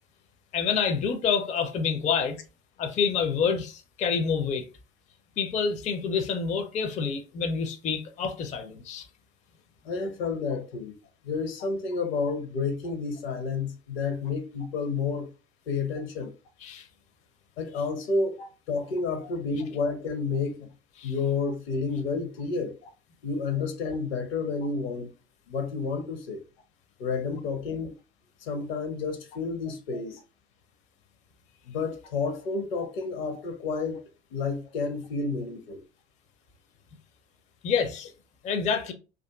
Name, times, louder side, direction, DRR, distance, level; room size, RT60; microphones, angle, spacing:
voice 1, 0.5-2.4 2.8-4.7 5.4-9.1 16.6-16.9 18.4-18.5 19.2-19.3 21.0-21.1 32.8-32.9 33.3-33.4 37.6-38.1 38.4-38.9, left 6 dB, 25° left, 0.4 m, -28 dB
voice 2, 9.8-10.9 11.2-15.3 15.7-16.3 17.6-18.4 18.7-20.7 21.0-22.8 23.2-25.1 25.5-26.4 27.0-27.9 28.4-30.2 31.7-34.0 34.3-35.8, left 4 dB, 70° left, 0.7 m, -30 dB
2.4 x 2.4 x 2.2 m
figure-of-eight pair, 70°, 31 cm